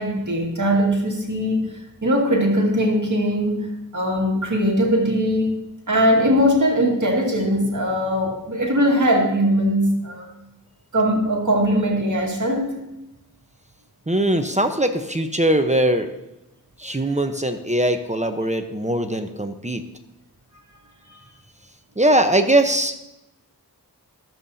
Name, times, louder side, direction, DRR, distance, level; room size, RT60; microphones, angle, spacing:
voice 1, 0.0-1.7 2.0-10.3 10.9-12.8, equal, 50° right, 0 dB, 2.2 m, -20 dB
voice 2, 14.1-16.1 16.8-19.8 22.0-23.0, right 1 dB, 20° right, 7 dB, 0.9 m, -21 dB
22.5 x 7.5 x 2.8 m, 0.91 s
cardioid pair, 40°, 38 cm